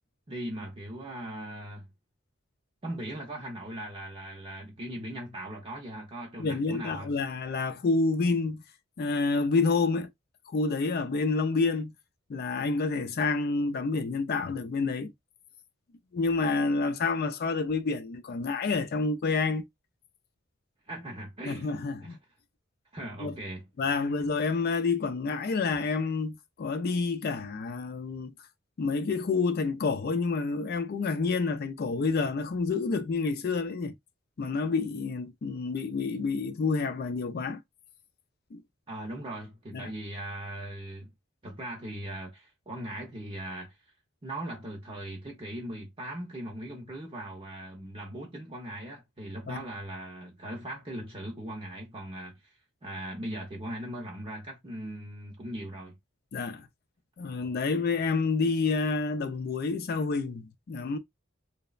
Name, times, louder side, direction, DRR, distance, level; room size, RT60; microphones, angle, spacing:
voice 1, 0.3-1.9 2.8-7.1 20.9-22.2 22.9-23.7 38.9-41.1 41.4-43.8 44.2-52.5 52.8-56.0, right 1 dB, 30° right, 0.6 m, -39 dB
voice 2, 6.4-8.6 9.0-10.1 10.5-11.9 12.3-15.1 16.1-19.6 21.5-22.2 23.2-23.3 23.8-28.3 28.8-33.9 34.4-37.6 38.5-38.6 39.7-39.9 49.5-49.6 56.3-56.7 57.2-61.0, left 4 dB, 50° left, 0.4 m, -28 dB
3.0 x 2.0 x 2.3 m
head